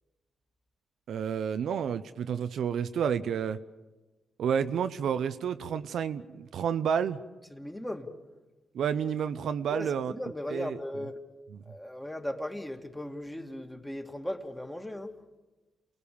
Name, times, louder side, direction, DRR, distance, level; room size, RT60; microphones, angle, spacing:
voice 1, 1.1-3.6 4.4-7.2 8.7-10.1 10.5-10.8 11.5-11.6, right 7 dB, 70° right, 11 dB, 0.8 m, -30 dB
voice 2, 7.5-8.1 9.7-11.2 11.7-15.1, left 1 dB, 10° left, 4 dB, 2.7 m, -37 dB
29.0 x 19.0 x 7.1 m, 1.1 s
supercardioid pair, 50°, 0 cm